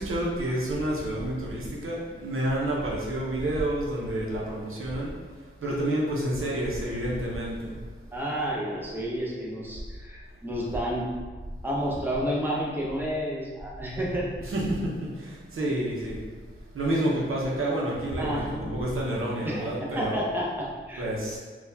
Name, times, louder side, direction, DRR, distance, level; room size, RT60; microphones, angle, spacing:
voice 1, 0.0-5.2 5.6-7.7 14.4-16.2 16.7-20.2 21.0-21.4, right 1 dB, 85° right, -4 dB, 0.8 m, -29 dB
voice 2, 8.1-11.1 11.6-14.3 18.2-18.7 19.4-21.1, equal, 10° right, -5 dB, 0.7 m, -30 dB
4.1 x 2.4 x 2.7 m, 1.4 s
wide cardioid pair, 105°, 21 cm